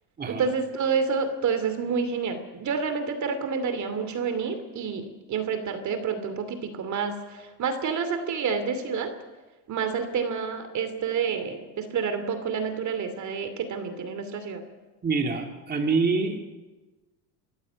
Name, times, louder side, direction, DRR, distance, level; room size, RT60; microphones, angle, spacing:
voice 1, 0.3-9.1 9.7-14.6, right 5 dB, 40° right, 10 dB, 2.7 m, -29 dB
voice 2, 15.0-16.4, right 4 dB, 20° right, 3 dB, 2.6 m, -25 dB
24.5 x 14.5 x 9.4 m, 1.2 s
supercardioid pair, 130°, 46 cm